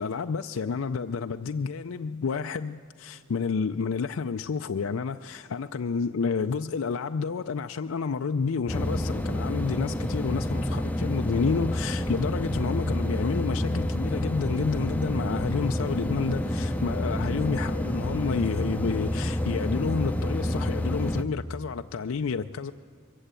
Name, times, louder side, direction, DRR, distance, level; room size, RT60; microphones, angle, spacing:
voice 1, 0.0-22.7, left 5 dB, 85° left, 0.5 m, -30 dB
sound 1, 8.7-21.2, left 1 dB, 10° left, 0.7 m, -29 dB
23.5 x 15.0 x 9.0 m
head